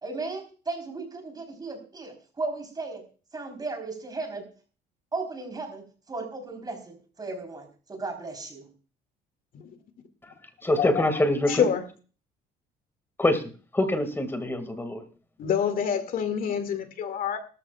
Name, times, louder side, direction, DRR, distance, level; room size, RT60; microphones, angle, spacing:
voice 1, 0.0-3.0 3.3-4.4 5.1-8.7, right 3 dB, 25° right, 4 dB, 4.0 m, -35 dB
voice 2, 10.6-11.7 13.2-13.4 13.7-15.0, left 1 dB, 15° left, 9 dB, 2.1 m, -25 dB
voice 3, 11.5-11.8 15.4-17.4, left 7 dB, 55° left, 8 dB, 2.2 m, -26 dB
18.0 x 14.0 x 2.4 m, 0.38 s
cardioid pair, 110°, 17 cm